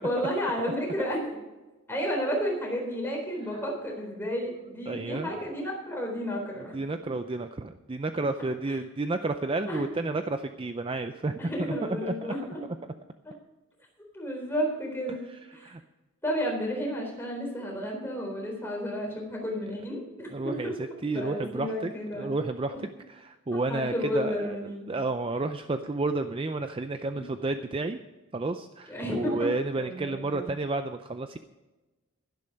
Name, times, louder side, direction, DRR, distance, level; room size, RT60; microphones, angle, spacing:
voice 1, 0.0-1.4 1.9-6.8 8.2-8.3 9.7-9.9 11.4-12.6 13.2-13.3 14.1-15.2 15.5-15.7 16.2-20.7 21.1-22.3 22.7-22.8 23.5-24.9 27.1-27.3 28.9-29.5 29.8-30.5, equal, 10° left, -1 dB, 3.9 m, -32 dB
voice 2, 4.9-5.3 6.6-11.4 11.7-12.3 15.3-15.8 20.3-24.6 24.9-28.0 28.3-31.4, right 2 dB, 25° right, 8 dB, 0.4 m, -31 dB
12.0 x 11.0 x 5.2 m, 1.1 s
head